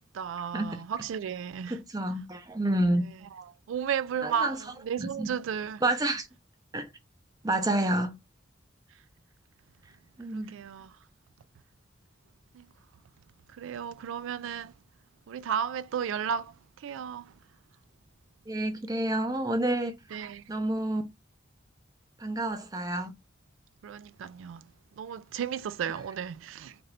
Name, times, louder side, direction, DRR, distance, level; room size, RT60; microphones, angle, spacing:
voice 1, 0.1-1.8 3.7-5.8 10.3-11.0 12.5-12.7 13.5-14.7 15.3-17.3 20.1-20.5 23.8-24.6 25.0-26.8, right 8 dB, 85° right, 0.3 m, -34 dB
voice 2, 1.7-3.0 4.2-4.6 5.0-5.4 5.8-6.3 6.7-6.9 7.4-8.2 10.2-10.6 18.5-19.9 20.5-21.1 22.2-23.1, right 1 dB, 20° right, 0.5 m, -29 dB
2.7 x 2.5 x 3.2 m
head